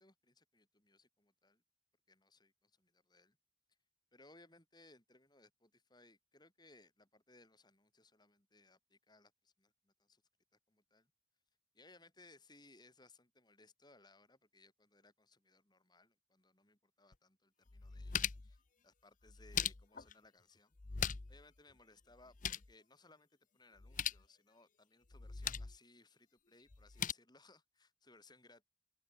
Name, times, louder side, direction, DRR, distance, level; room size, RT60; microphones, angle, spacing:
voice 1, 0.0-1.6 2.1-3.4 4.1-10.2 10.7-11.1 11.7-23.3 23.5-28.7, left 2 dB, 20° left, 6.0 m, -65 dB
sound 1, 17.1-17.2 17.7-18.6 19.3-20.1 20.8-21.4 21.7-21.8 22.1-22.7 23.8-24.2 25.1-25.8 26.7-27.1, left 8 dB, 40° left, 0.8 m, -40 dB
open air
head